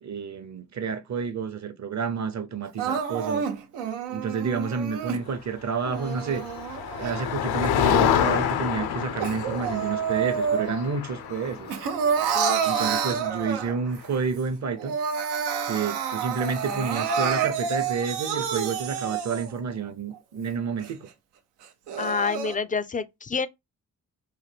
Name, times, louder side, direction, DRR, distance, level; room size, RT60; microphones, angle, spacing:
voice 1, 0.0-3.5 4.1-6.4 7.0-11.7 12.6-15.0 15.7-21.1, right 5 dB, 45° right, 0.8 m, -30 dB
Crying sobbing, 2.8-5.2 5.8-7.6 8.1-11.0 11.3-14.0 14.4-14.5 14.8-19.6 20.1-20.2 20.8-20.9 21.6-22.6, right 7 dB, 80° right, 0.6 m, -29 dB
Motor vehicle (road), 5.9-13.7, left 9 dB, 70° left, 0.6 m, -28 dB
voice 2, 12.3-13.0 22.0-23.5, left 5 dB, 20° left, 0.4 m, -29 dB
3.2 x 2.1 x 3.3 m
supercardioid pair, 45°, 40 cm